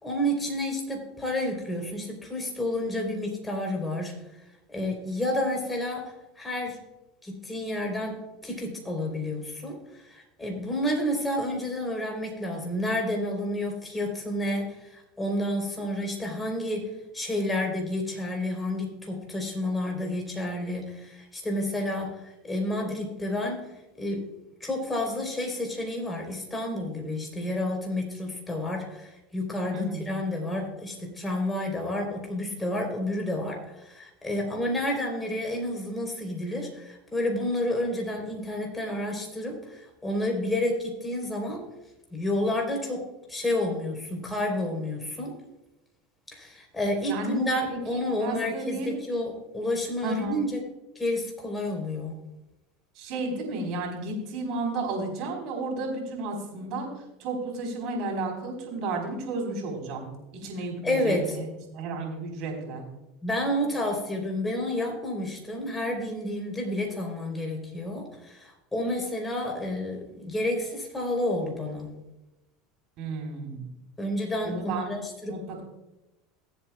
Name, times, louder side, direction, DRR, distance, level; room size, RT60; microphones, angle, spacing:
voice 1, 0.0-4.1 4.7-6.8 7.2-16.9 17.1-23.6 24.0-24.2 24.6-41.6 42.1-45.4 46.3-50.6 51.0-52.2 60.8-61.3 61.9-62.0 63.2-71.9 74.0-75.4, left 1 dB, 15° left, 2 dB, 3.8 m, -30 dB
voice 2, 29.7-30.1 47.1-49.0 50.0-50.4 53.0-56.9 57.2-60.1 60.4-61.5 61.7-62.9 73.0-73.7 74.4-74.9 75.3-75.6, right 2 dB, 60° right, 1 dB, 4.3 m, -32 dB
22.0 x 8.1 x 2.4 m, 0.95 s
supercardioid pair, 110°, 0 cm